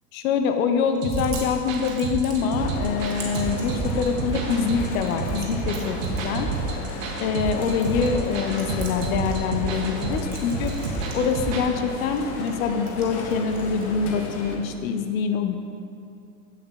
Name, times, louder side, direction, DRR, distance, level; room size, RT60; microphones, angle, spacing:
voice 1, 0.1-6.5 7.2-10.7 11.1-15.6, left 6 dB, 60° left, 6 dB, 0.6 m, -25 dB
Chewing mastication, 0.8-14.8, right 3 dB, 75° right, 1.4 m, -46 dB
sound 1, 1.0-11.7, right 4 dB, 55° right, 0.9 m, -30 dB
sound 2, 2.5-14.6, left 3 dB, 25° left, 0.3 m, -35 dB
7.5 x 6.7 x 2.3 m, 2.5 s
hypercardioid pair, 100°, 47 cm